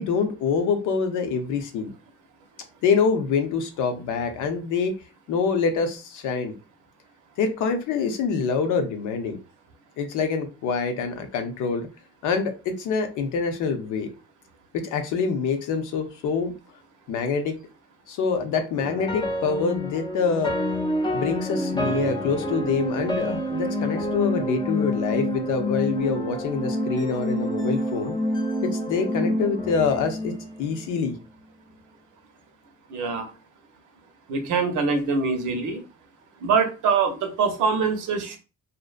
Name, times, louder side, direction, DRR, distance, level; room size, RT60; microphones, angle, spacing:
voice 1, 0.0-1.9 2.8-5.0 5.3-6.5 7.4-9.4 10.0-11.9 12.2-14.1 14.7-16.5 17.1-17.6 18.1-20.6 21.1-28.1 28.6-31.2, left 5 dB, 85° left, 6 dB, 0.6 m, -25 dB
sound 1, 18.8-31.0, equal, 15° left, 0.4 m, -28 dB
voice 2, 32.9-33.3 34.3-35.8 36.4-38.4, right 5 dB, 80° right, 5 dB, 0.7 m, -24 dB
2.6 x 2.1 x 2.4 m, 0.31 s
cardioid pair, 90°, 30 cm